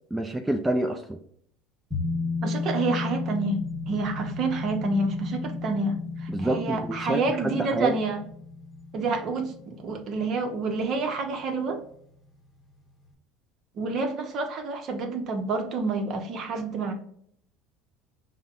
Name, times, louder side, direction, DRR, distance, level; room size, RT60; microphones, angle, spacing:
voice 1, 0.1-1.2 6.3-7.9, right 1 dB, 10° right, 4 dB, 0.4 m, -28 dB
sound 1, 1.9-11.0 11.3-11.4, left 4 dB, 5° left, 1.4 m, -34 dB
voice 2, 2.4-8.2 8.9-11.8 13.8-16.9, right 3 dB, 50° right, 5 dB, 0.8 m, -28 dB
5.1 x 2.2 x 2.5 m, 0.65 s
supercardioid pair, 90°, 0 cm